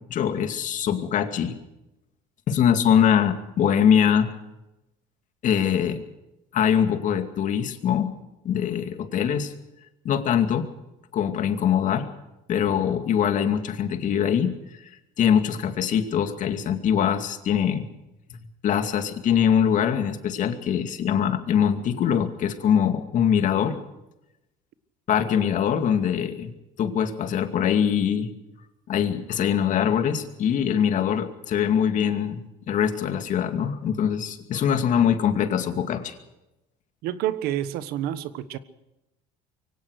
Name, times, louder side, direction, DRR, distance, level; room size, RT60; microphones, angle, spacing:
voice 1, 0.1-1.6 2.5-4.3 5.4-6.0 6.5-8.1 8.4-9.5 10.0-10.7 11.1-12.1 12.5-14.6 15.2-17.9 18.6-23.8 25.1-26.5 26.8-28.3 28.9-36.2, left 8 dB, 50° left, 7 dB, 2.4 m, -23 dB
voice 2, 37.0-38.6, right 12 dB, 70° right, 14 dB, 1.3 m, -28 dB
23.5 x 17.5 x 6.5 m, 0.93 s
cardioid pair, 115°, 16 cm